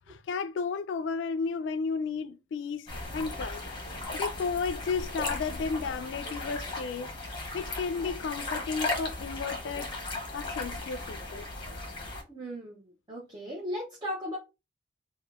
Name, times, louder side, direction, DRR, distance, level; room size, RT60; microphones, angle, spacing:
voice 1, 0.1-2.9 3.1-3.6 4.1-7.1 7.5-9.9 10.3-11.5, left 5 dB, 75° left, 0.3 m, -33 dB
sound 1, 2.9-12.2, left 2 dB, 25° left, 0.9 m, -36 dB
voice 2, 12.3-14.4, equal, 25° right, 0.6 m, -37 dB
3.5 x 2.1 x 2.3 m
head